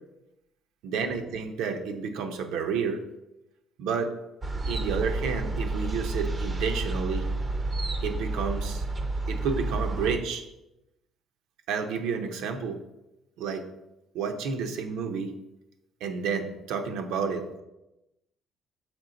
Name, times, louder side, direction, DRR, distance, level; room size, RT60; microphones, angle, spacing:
voice 1, 0.8-3.0 3.8-4.1 4.7-7.3 8.0-8.8 9.3-10.4 11.7-12.8 13.4-13.7 14.1-15.3 16.0-17.6, right 5 dB, 85° right, 6 dB, 0.7 m, -30 dB
sound 1, 4.4-10.2, right 2 dB, 20° right, 0.5 m, -30 dB
6.1 x 4.9 x 3.9 m, 0.93 s
cardioid pair, 160°, 0 cm